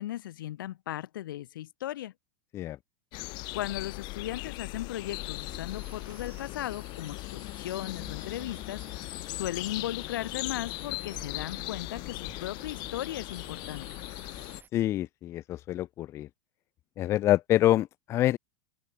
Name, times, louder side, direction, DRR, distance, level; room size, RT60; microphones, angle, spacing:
voice 1, 0.0-2.1 3.5-13.9, left 13 dB, 80° left, 1.3 m, -37 dB
sound 1, 3.1-14.6, left 24 dB, 40° left, 1.0 m, -39 dB
sound 2, 5.1-14.7, right 7 dB, 20° right, 1.7 m, -54 dB
sound 3, 5.2-12.1, right 12 dB, 80° right, 7.2 m, -67 dB
voice 2, 14.7-16.3 17.0-18.4, left 14 dB, 25° left, 0.3 m, -26 dB
supercardioid pair, 145°, 11 cm